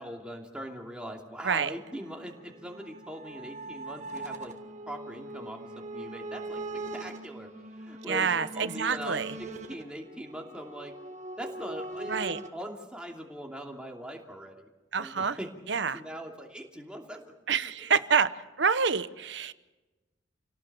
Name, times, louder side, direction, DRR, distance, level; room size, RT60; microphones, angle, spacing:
voice 1, 0.0-4.5 4.9-10.9 11.4-14.7 15.0-17.7, equal, 5° right, 1 dB, 2.7 m, -42 dB
sound 1, 1.8-12.5, right 2 dB, 40° right, 1.6 m, -41 dB
voice 2, 8.1-9.3 12.1-12.4 14.9-15.4 15.7-16.0 17.5-18.3 18.6-19.5, right 6 dB, 65° right, 14 dB, 0.9 m, -27 dB
29.0 x 18.0 x 6.9 m, 1.1 s
head